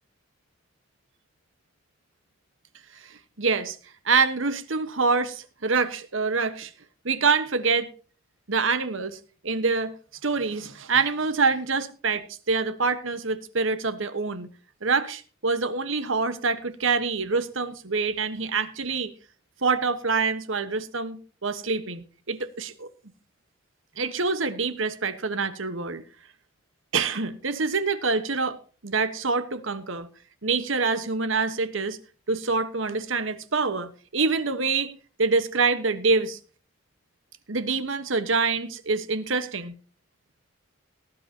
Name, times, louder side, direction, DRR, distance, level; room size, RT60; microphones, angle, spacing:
voice 1, 3.1-3.8 4.0-6.7 7.0-7.9 8.5-9.9 10.2-14.5 14.8-19.1 19.6-22.9 24.0-26.0 26.9-30.1 30.4-32.0 32.3-34.9 35.2-36.4 37.5-39.8, right 4 dB, 75° right, 1.2 m, -26 dB
18.5 x 11.0 x 2.8 m
head